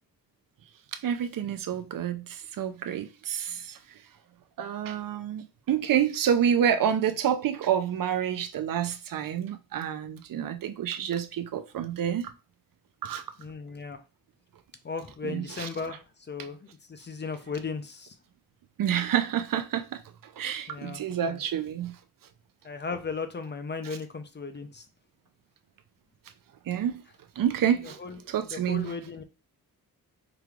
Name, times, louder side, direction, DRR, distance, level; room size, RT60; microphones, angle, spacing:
voice 1, 1.0-3.8 4.6-12.3 13.0-13.2 15.2-15.7 18.8-21.9 23.8-24.0 26.7-27.0 27.4-28.0 28.3-28.9, right 9 dB, 65° right, 0.6 m, -28 dB
voice 2, 13.4-14.0 14.8-18.1 20.7-21.4 22.6-24.8 27.8-28.2 28.5-29.2, left 4 dB, 30° left, 0.6 m, -36 dB
4.9 x 3.1 x 2.4 m
cardioid pair, 95°, 36 cm